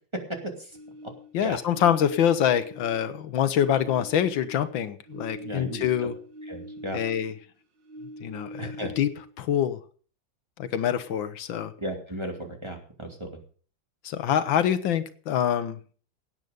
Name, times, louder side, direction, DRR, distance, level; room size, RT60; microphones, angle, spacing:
sound 1, 0.7-3.2 3.5-7.5 7.8-9.5, equal, 65° right, 2.2 m, -43 dB
voice 1, 1.3-6.1 6.9-7.3 8.2-9.1 9.4-9.8 10.6-11.7 14.0-15.8, left 9 dB, 75° left, 12 dB, 1.6 m, -25 dB
voice 2, 5.4-5.9 6.5-7.0 8.6-8.9 11.8-13.3, equal, 15° right, 3 dB, 2.4 m, -35 dB
17.0 x 9.3 x 5.2 m, 0.42 s
omnidirectional pair, 2.1 m